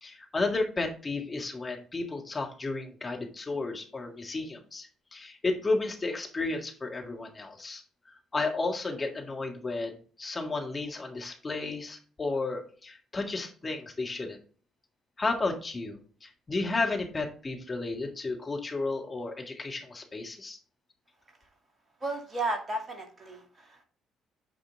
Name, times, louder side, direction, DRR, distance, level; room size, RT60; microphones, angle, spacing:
voice 1, 0.0-14.4 15.2-20.6, left 3 dB, 25° left, 2 dB, 1.7 m, -33 dB
voice 2, 22.0-23.8, right 2 dB, 30° right, 3 dB, 2.4 m, -34 dB
9.0 x 5.0 x 3.5 m, 0.42 s
figure-of-eight pair, 45°, 0 cm